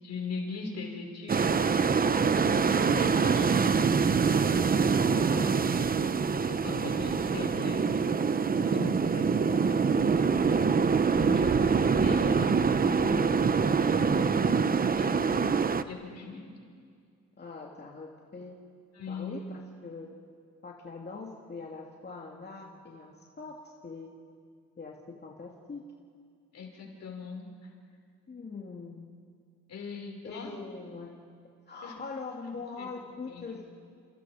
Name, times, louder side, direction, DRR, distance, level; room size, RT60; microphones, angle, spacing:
voice 1, 0.0-4.4 6.0-15.3 15.9-16.5 18.9-19.4 26.5-27.7 29.7-30.5 31.8-31.9 32.8-32.9 33.3-33.6, left 4 dB, 60° left, 1 dB, 5.9 m, -41 dB
sound 1, 1.3-15.8, right 5 dB, 30° right, 0.9 m, -25 dB
voice 2, 5.1-5.9 17.4-18.6 19.1-20.2 20.6-24.1 24.8-25.8 28.3-29.1 30.2-31.2 31.7-33.6, left 4 dB, 35° left, -1 dB, 2.7 m, -42 dB
30.0 x 29.0 x 5.2 m, 2.2 s
cardioid pair, 90°, 30 cm